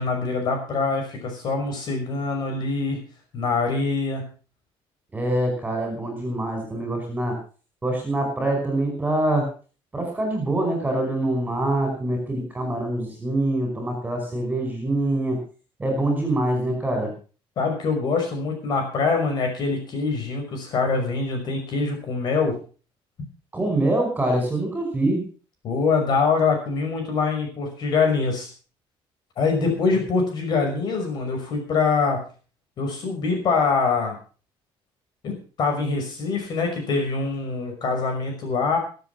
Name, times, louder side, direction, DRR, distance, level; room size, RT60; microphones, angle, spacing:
voice 1, 0.0-3.0 3.3-4.3 17.6-22.5 25.6-28.5 29.4-32.2 32.8-34.2 35.2-38.8, left 4 dB, 45° left, 2 dB, 5.8 m, -24 dB
voice 2, 5.1-7.4 7.8-9.5 9.9-15.4 15.8-17.1 23.5-25.2, right 1 dB, 15° right, 3 dB, 5.3 m, -24 dB
22.5 x 8.1 x 5.8 m, 0.38 s
cardioid pair, 170°, 10 cm